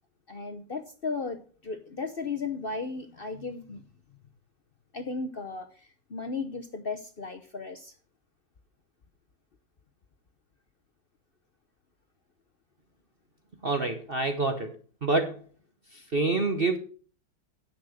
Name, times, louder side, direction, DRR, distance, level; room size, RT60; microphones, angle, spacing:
voice 1, 0.3-3.8 4.9-7.9, left 4 dB, 55° left, 0.6 m, -35 dB
voice 2, 13.6-14.8 15.0-15.4 15.9-16.8, right 3 dB, 40° right, 0.8 m, -27 dB
10.0 x 6.6 x 6.3 m
omnidirectional pair, 2.1 m